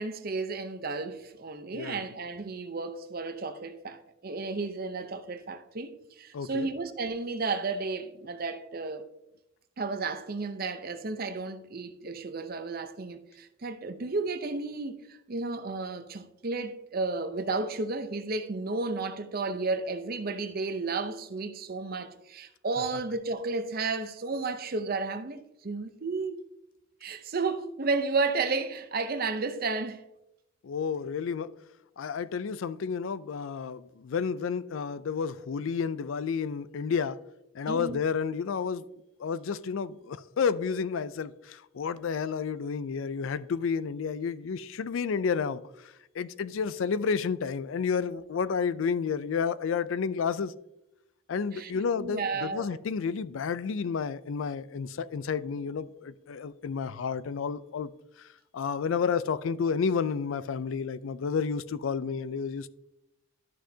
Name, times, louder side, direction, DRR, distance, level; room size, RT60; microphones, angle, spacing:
voice 1, 0.0-9.1 9.8-26.4 27.0-30.0 37.7-38.0 51.5-51.7 52.0-52.8, right 3 dB, 50° right, 0.7 m, -33 dB
voice 2, 1.7-2.0 6.3-6.7 30.6-31.5 32.0-37.2 37.5-38.9 39.2-45.6 46.2-50.5 51.3-57.9 58.5-62.7, left 6 dB, 80° left, 0.4 m, -31 dB
11.5 x 6.3 x 2.7 m
head